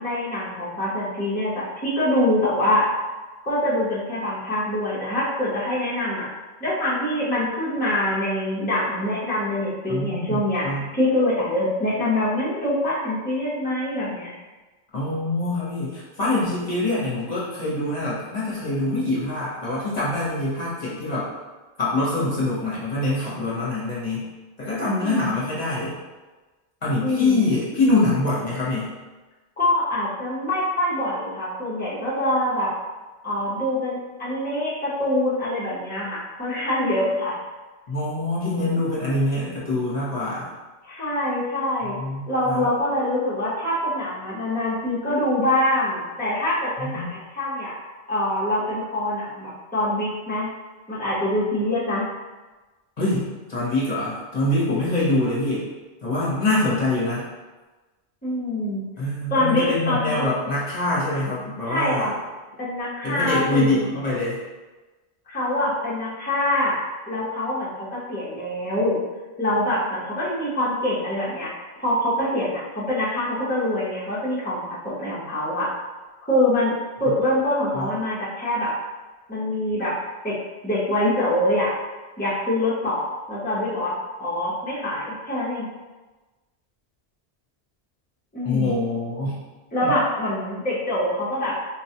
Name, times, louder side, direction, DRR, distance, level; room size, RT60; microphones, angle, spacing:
voice 1, 0.0-2.9 3.4-6.3 6.6-10.7 10.9-14.3 25.0-25.4 27.0-27.6 29.6-32.7 33.2-37.4 40.8-41.9 42.3-47.8 48.1-50.5 50.9-52.0 58.2-58.8 59.3-60.2 61.6-62.1 62.6-63.8 65.3-69.0 69.4-71.5 71.8-75.7 76.3-76.7 77.0-78.7 79.3-79.9 80.2-80.3 80.6-81.7 82.2-85.7 88.3-88.7 89.7-91.5, left 1 dB, 10° left, -9 dB, 0.6 m, -24 dB
voice 2, 9.9-10.9 14.9-21.3 21.8-24.3 24.6-26.0 26.8-28.9 37.9-40.5 42.0-42.7 46.8-47.1 53.0-55.6 56.0-57.2 59.0-62.1 63.0-64.4 77.7-77.9 88.4-89.4 89.8-89.9, left 2 dB, 40° left, -8 dB, 0.9 m, -24 dB
4.0 x 2.3 x 2.8 m, 1.2 s
omnidirectional pair, 1.1 m